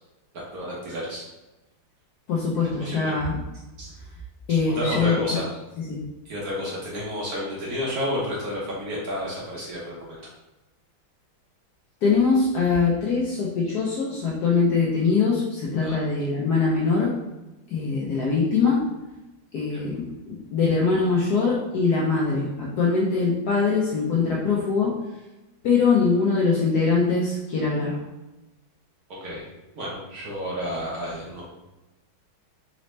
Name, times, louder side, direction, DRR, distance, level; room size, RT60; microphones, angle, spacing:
voice 1, 0.5-1.2 2.8-3.1 3.8-3.9 4.5-5.4 6.3-10.2 15.8-16.0 19.7-19.8 29.1-29.4 29.7-31.4, equal, 55° right, -5 dB, 1.2 m, -31 dB
voice 2, 2.3-3.3 4.5-5.4 5.9-6.0 12.0-17.2 17.7-18.8 19.5-24.9 25.6-28.0, left 4 dB, 70° left, -4 dB, 1.0 m, -22 dB
4.1 x 2.7 x 3.1 m, 1.0 s
omnidirectional pair, 2.2 m